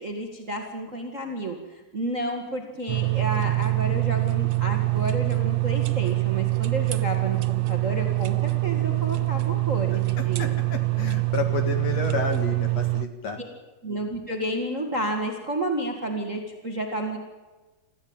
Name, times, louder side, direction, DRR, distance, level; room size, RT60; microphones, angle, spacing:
voice 1, 0.0-10.5 13.4-13.5 13.8-17.2, right 1 dB, 30° right, 3 dB, 1.7 m, -31 dB
sound 1, 2.9-13.0, right 21 dB, 85° right, 1.4 m, -24 dB
voice 2, 10.2-13.4, left 5 dB, 50° left, 6 dB, 2.7 m, -31 dB
26.0 x 14.5 x 8.9 m, 1.2 s
omnidirectional pair, 4.1 m